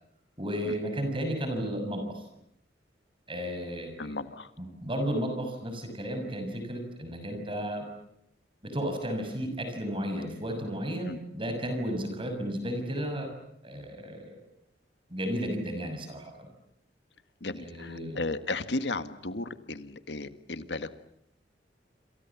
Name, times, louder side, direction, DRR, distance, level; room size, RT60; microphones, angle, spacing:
voice 1, 0.4-2.2 3.3-4.2 4.6-7.9 8.6-13.3 13.6-14.3 15.1-16.3 17.6-18.2, equal, 30° right, 6 dB, 6.6 m, -33 dB
voice 2, 4.0-4.5 11.1-11.2 17.4-20.9, left 2 dB, 75° left, 11 dB, 1.7 m, -35 dB
28.0 x 28.0 x 7.3 m, 0.76 s
head